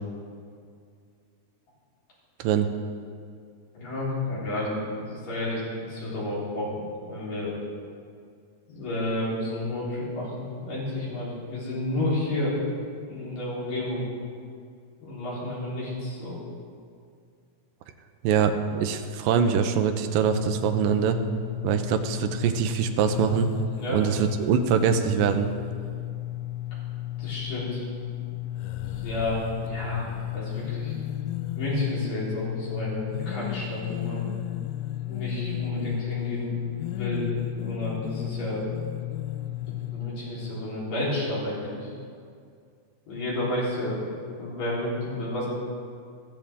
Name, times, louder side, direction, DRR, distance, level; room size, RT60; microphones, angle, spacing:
voice 1, 3.7-7.5 8.7-12.6 13.1-14.0 15.0-16.4 23.8-24.0 27.2-27.9 28.7-30.1 30.3-30.9 31.6-34.2 35.1-37.3 37.5-38.6 39.9-41.9 43.1-45.5, left 1 dB, 65° left, -8 dB, 5.6 m, -31 dB
voice 2, 18.2-21.2 21.6-23.5 23.9-25.5, right 7 dB, 85° right, 7 dB, 2.3 m, -23 dB
sound 1, 20.2-40.1, left 14 dB, 85° left, 2.4 m, -34 dB
15.0 x 14.5 x 3.7 m, 2.2 s
omnidirectional pair, 4.1 m